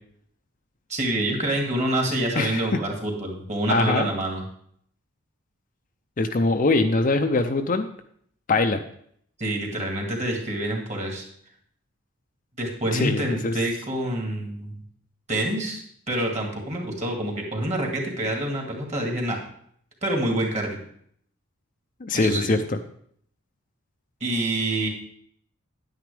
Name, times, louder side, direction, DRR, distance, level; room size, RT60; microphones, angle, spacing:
voice 1, 0.9-4.4 9.4-11.2 12.6-14.8 15.3-19.4 20.0-20.8 22.1-22.5 24.2-24.9, right 1 dB, 30° right, 1 dB, 2.0 m, -27 dB
voice 2, 3.7-4.1 6.2-7.9 8.5-8.8 12.9-13.5 22.0-22.8, left 3 dB, 35° left, 6 dB, 0.5 m, -22 dB
9.9 x 9.4 x 3.4 m, 0.64 s
head